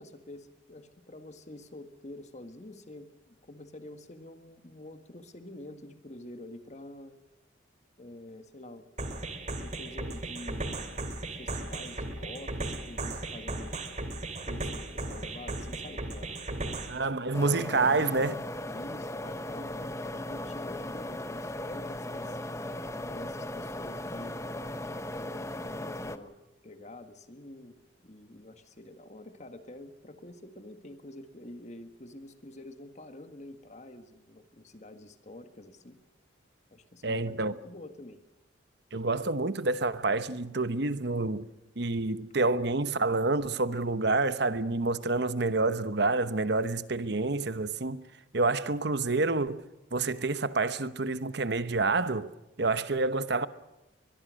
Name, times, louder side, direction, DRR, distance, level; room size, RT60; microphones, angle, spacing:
voice 1, 0.0-7.2 8.0-8.9 9.6-13.8 14.4-16.8 18.7-22.4 23.0-24.4 25.2-26.4 26.6-36.0 36.7-38.2, left 1 dB, 35° left, 1.7 m, -47 dB
sound 1, 9.0-17.0, right 2 dB, 40° right, 2.7 m, -36 dB
voice 2, 16.9-18.4 37.0-37.5 38.9-41.5 41.8-48.0 48.3-49.6 49.9-52.3 52.6-53.5, right 3 dB, 60° right, 1.0 m, -28 dB
sound 2, 17.3-26.2, left 1 dB, 15° left, 1.0 m, -37 dB
23.0 x 22.0 x 6.4 m
head